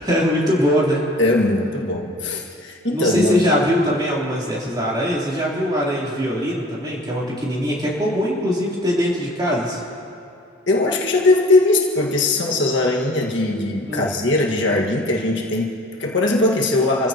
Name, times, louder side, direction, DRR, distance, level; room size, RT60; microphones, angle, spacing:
voice 1, 0.0-1.1 2.9-9.8 13.9-14.1, equal, 20° right, -6 dB, 3.5 m, -21 dB
voice 2, 1.2-3.5 10.7-17.1, left 2 dB, 60° left, -2 dB, 1.8 m, -20 dB
28.5 x 15.0 x 3.0 m, 2.7 s
head